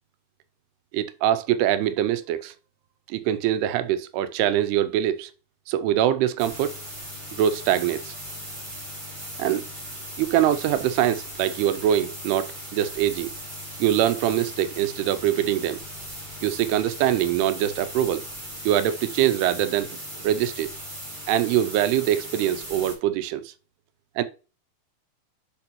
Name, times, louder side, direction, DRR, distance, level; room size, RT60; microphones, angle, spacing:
voice 1, 0.9-2.5 3.1-5.3 5.7-6.8 7.3-8.1 9.4-9.7 10.2-13.3 13.8-15.8 16.4-18.2 18.7-20.0 20.2-20.7 21.3-23.5 24.2-24.3, right 11 dB, 90° right, 2.7 m, -23 dB
sound 1, 6.4-22.9, equal, 20° right, 1.5 m, -38 dB
9.8 x 4.4 x 3.0 m
omnidirectional pair, 4.6 m